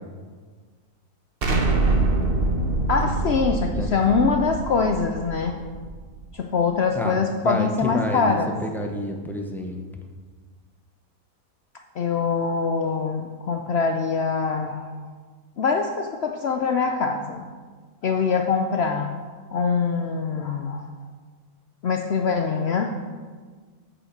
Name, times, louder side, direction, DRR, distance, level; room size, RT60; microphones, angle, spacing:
Explosion, 1.4-6.2, right 3 dB, 40° right, 1.1 m, -24 dB
voice 1, 2.9-5.6 6.3-8.5 12.0-14.9 15.6-17.5 18.0-19.1 19.5-20.9 21.8-22.9, left 5 dB, 60° left, 4 dB, 0.7 m, -23 dB
voice 2, 7.4-9.8, left 1 dB, ahead, 2 dB, 0.5 m, -29 dB
8.4 x 5.7 x 6.5 m, 1.5 s
omnidirectional pair, 1.6 m